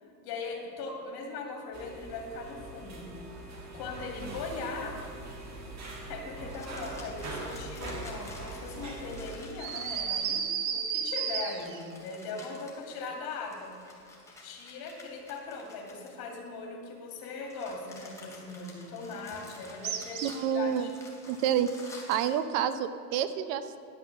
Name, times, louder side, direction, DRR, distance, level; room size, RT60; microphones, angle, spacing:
voice 1, 0.2-3.1 3.7-5.0 6.1-13.7 14.4-20.9, left 3 dB, 50° left, 2 dB, 2.3 m, -40 dB
sound 1, 1.7-9.4, right 2 dB, 35° right, 1.9 m, -42 dB
sound 2, 6.4-10.7 11.6-16.5 17.2-22.4, left 2 dB, 5° left, 2.5 m, -51 dB
sound 3, 9.6-11.9 19.8-20.6, right 7 dB, 80° right, 1.1 m, -32 dB
voice 2, 20.2-20.9 21.3-21.7 22.1-23.8, right 9 dB, 55° right, 12 dB, 0.7 m, -28 dB
11.0 x 6.0 x 6.2 m, 2.8 s
hypercardioid pair, 95°, 48 cm